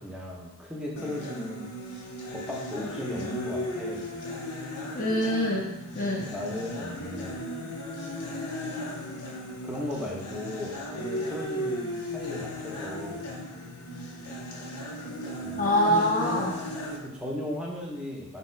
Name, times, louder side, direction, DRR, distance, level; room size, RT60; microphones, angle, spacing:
voice 1, 0.0-1.7 2.3-4.1 6.0-7.4 9.6-13.3 15.4-16.5 16.9-18.4, left 1 dB, 5° right, -3 dB, 0.7 m, -36 dB
sound 1, 1.0-17.0, left 1 dB, 85° left, 0.7 m, -36 dB
voice 2, 4.9-6.3 15.6-16.6, left 1 dB, 40° left, -3 dB, 0.5 m, -25 dB
3.4 x 2.8 x 4.4 m, 0.89 s
head